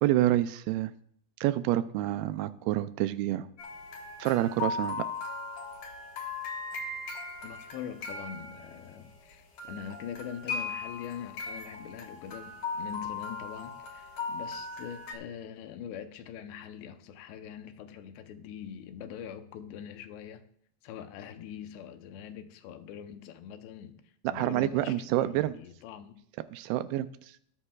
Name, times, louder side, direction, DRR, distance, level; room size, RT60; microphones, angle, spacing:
voice 1, 0.0-0.9 1.4-3.5 4.2-5.1 24.2-25.5 26.5-27.1, right 14 dB, 85° right, 12 dB, 2.3 m, -27 dB
sound 1, 3.6-9.3 9.6-15.1, left 4 dB, 55° left, 2.4 m, -38 dB
voice 2, 7.4-20.4 20.8-24.0 24.3-26.1, left 9 dB, 90° left, 8 dB, 3.1 m, -43 dB
19.0 x 9.7 x 2.4 m, 0.65 s
omnidirectional pair, 4.8 m